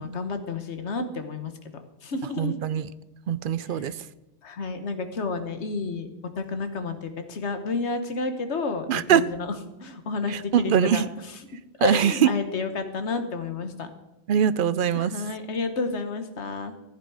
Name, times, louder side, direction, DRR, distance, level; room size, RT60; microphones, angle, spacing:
voice 1, 0.0-1.5 2.0-2.6 3.7-3.9 4.4-6.1 6.4-9.5 9.8-11.4 11.8-13.9 14.9-16.7, left 4 dB, 85° left, 8 dB, 1.4 m, -30 dB
voice 2, 2.4-2.9 3.3-3.9 8.9-9.2 10.3-11.0 11.8-12.3 14.3-15.1, right 9 dB, 60° right, 16 dB, 0.6 m, -22 dB
14.5 x 9.4 x 4.8 m, 0.99 s
omnidirectional pair, 1.1 m